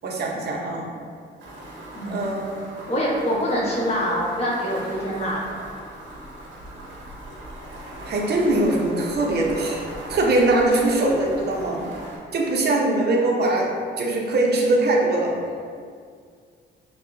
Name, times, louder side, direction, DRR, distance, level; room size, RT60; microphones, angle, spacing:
voice 1, 0.0-0.9 2.1-2.8 8.1-9.8 10.1-11.8 12.3-13.7 14.0-15.4, right 2 dB, 55° right, -1 dB, 0.8 m, -22 dB
sound 1, 1.4-12.2, right 1 dB, 75° right, 1.0 m, -39 dB
voice 2, 1.9-2.3 2.9-5.4, equal, 30° left, -6 dB, 1.3 m, -25 dB
6.2 x 2.3 x 2.6 m, 2.1 s
cardioid pair, 90°, 20 cm